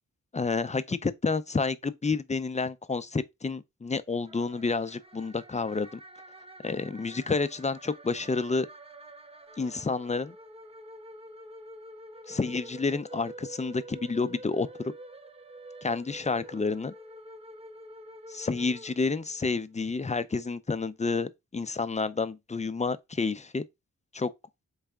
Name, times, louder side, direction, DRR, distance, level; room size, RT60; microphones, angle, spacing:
voice 1, 0.3-6.0 6.6-8.7 9.6-10.3 12.3-14.7 15.8-16.9 18.3-23.6 24.1-24.3, left 4 dB, 20° left, 0.5 m, -29 dB
sound 1, 4.2-19.5, right 1 dB, 20° right, 0.7 m, -48 dB
4.0 x 3.3 x 3.5 m
cardioid pair, 50°, 31 cm